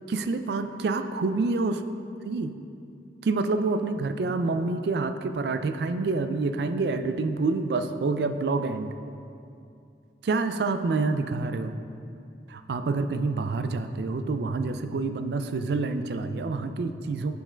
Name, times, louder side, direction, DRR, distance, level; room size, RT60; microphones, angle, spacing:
voice 1, 0.1-1.8 2.3-2.5 3.2-9.0 10.2-11.8 12.5-17.3, right 3 dB, 65° right, 9 dB, 0.4 m, -27 dB
8.2 x 4.4 x 4.4 m, 2.5 s
head